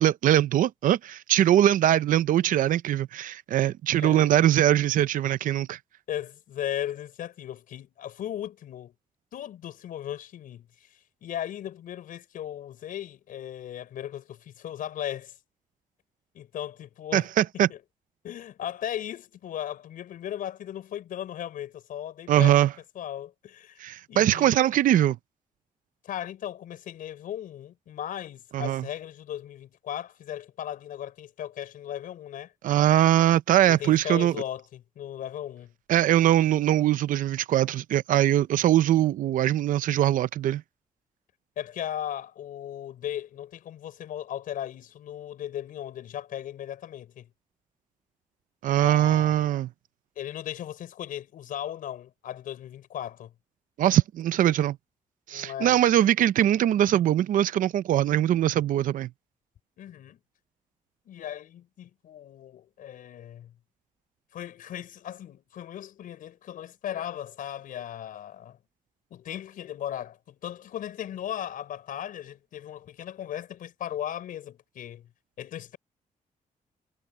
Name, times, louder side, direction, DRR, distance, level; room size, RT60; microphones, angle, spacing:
voice 1, 0.0-5.8 17.1-17.7 22.3-22.7 23.8-25.2 28.5-28.8 32.6-34.4 35.9-40.6 48.6-49.7 53.8-54.8 55.3-59.1, right 12 dB, 75° right, 0.6 m, -22 dB
voice 2, 4.0-4.4 6.1-8.9 9.3-10.9 11.2-15.4 16.3-17.3 17.7-17.8 18.2-22.6 23.0-23.8 24.1-24.6 26.0-32.5 33.7-35.7 41.6-47.3 48.8-49.6 50.2-53.3 55.3-55.8 59.8-60.2 61.1-63.5 64.3-68.6 69.1-75.1 75.4-75.8, left 11 dB, 80° left, 5.7 m, -37 dB
wide cardioid pair, 155°, 14 cm